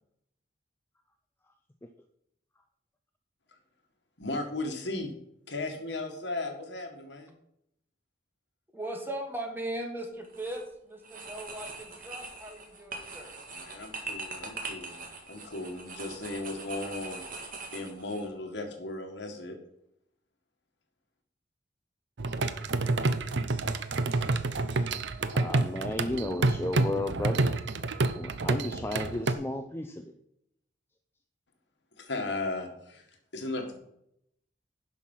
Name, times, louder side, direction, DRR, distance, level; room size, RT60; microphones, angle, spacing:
voice 1, 4.2-5.1 5.5-7.3 13.5-15.0 15.3-19.6 32.0-33.8, left 2 dB, 65° left, 4 dB, 1.9 m, -36 dB
voice 2, 8.7-13.4, right 1 dB, 10° right, 3 dB, 1.7 m, -38 dB
sound 1, 10.2-10.6 11.0-18.2, right 3 dB, 50° right, 1.9 m, -42 dB
sound 2, 22.2-29.3, right 3 dB, 70° right, 0.7 m, -28 dB
voice 3, 25.3-27.5 28.2-30.1, left 1 dB, 15° left, 5 dB, 0.6 m, -33 dB
11.0 x 5.8 x 5.6 m, 0.76 s
head